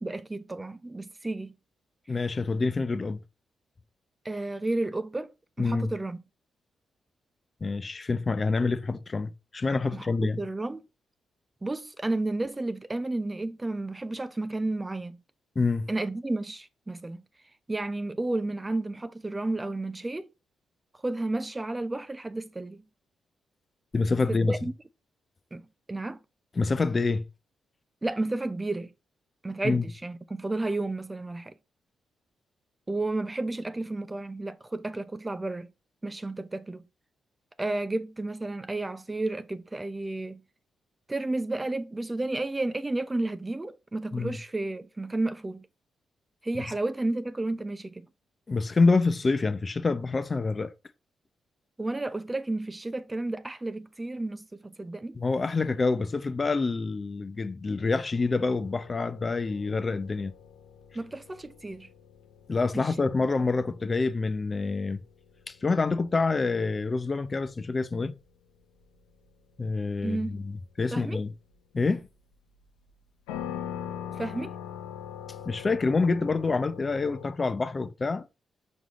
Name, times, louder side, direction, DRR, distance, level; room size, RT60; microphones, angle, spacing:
voice 1, 0.0-1.5 4.2-6.2 9.9-10.8 11.6-15.2 15.9-17.2 17.7-20.3 21.0-22.8 24.3-24.7 25.5-25.6 25.9-26.2 28.0-28.9 29.4-31.5 32.9-35.7 36.0-36.8 37.6-40.4 41.1-45.7 46.4-48.1 51.8-55.2 60.9-61.9 62.7-62.9 63.4-63.5 70.0-70.4 70.9-71.2 74.2-74.6, right 2 dB, 25° right, 0.7 m, -32 dB
voice 2, 2.1-3.2 5.6-5.9 7.6-10.4 15.6-15.9 23.9-24.5 26.6-27.2 29.6-29.8 44.1-44.3 46.5-46.6 48.5-50.7 55.2-60.3 62.5-65.0 65.5-68.1 69.6-71.3 71.7-72.1 75.5-78.3, left 3 dB, 40° left, 0.6 m, -27 dB
sound 1, 58.1-77.3, left 9 dB, 85° left, 0.7 m, -44 dB
6.1 x 5.3 x 3.0 m
hypercardioid pair, 40°, 0 cm